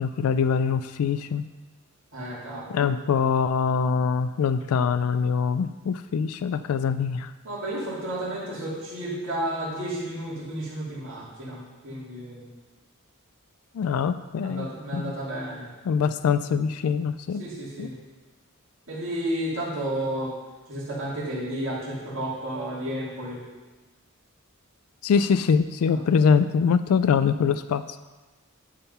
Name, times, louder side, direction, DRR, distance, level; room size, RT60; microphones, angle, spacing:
voice 1, 0.0-1.4 2.7-7.3 13.8-14.7 14.9-15.1 15.9-17.4 17.8-17.9 25.0-27.8, left 6 dB, 75° left, 13 dB, 0.3 m, -23 dB
voice 2, 2.1-2.8 7.4-12.5 14.4-15.7 17.4-18.0 18.9-20.3 20.7-23.4 25.8-26.0, right 1 dB, 60° right, -7 dB, 2.9 m, -32 dB
11.5 x 3.8 x 5.5 m, 1.2 s
head